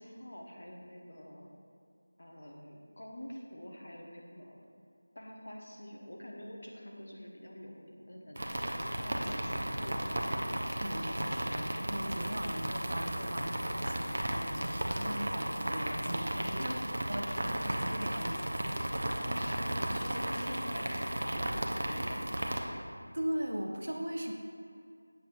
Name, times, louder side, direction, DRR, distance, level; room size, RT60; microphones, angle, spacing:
voice 1, 0.0-1.5 2.2-4.7 5.1-10.2 16.6-16.9 19.2-22.4, equal, 45° left, -1 dB, 0.9 m, -46 dB
sound 1, 8.4-22.6, right 1 dB, 40° right, 0.5 m, -34 dB
voice 2, 10.8-16.8 17.1-18.6 23.1-24.3, equal, 80° right, 2 dB, 0.8 m, -38 dB
7.7 x 6.9 x 2.6 m, 2.3 s
figure-of-eight pair, 180°, 0 cm